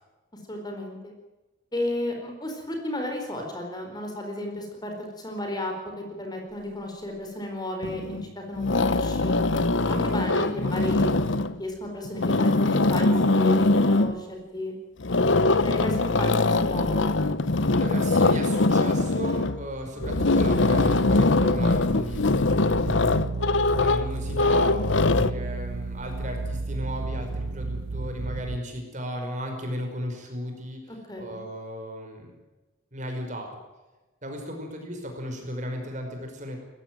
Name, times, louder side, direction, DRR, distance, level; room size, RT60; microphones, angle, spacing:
voice 1, 0.5-1.1 1.7-9.4 9.8-14.7 15.6-17.1 30.9-31.4, left 1 dB, 20° left, 2 dB, 4.5 m, -33 dB
sound 1, 7.8-8.3 8.6-11.6 12.0-14.2 15.0-25.3, left 2 dB, 70° left, 1.0 m, -22 dB
voice 2, 17.7-22.3 23.7-24.8 25.0-30.8 31.2-32.3 32.9-33.5 34.2-36.6, equal, 40° right, 3 dB, 5.3 m, -35 dB
sound 2, 20.0-28.6, right 3 dB, 85° right, 0.8 m, -33 dB
20.0 x 15.0 x 9.2 m, 1.1 s
head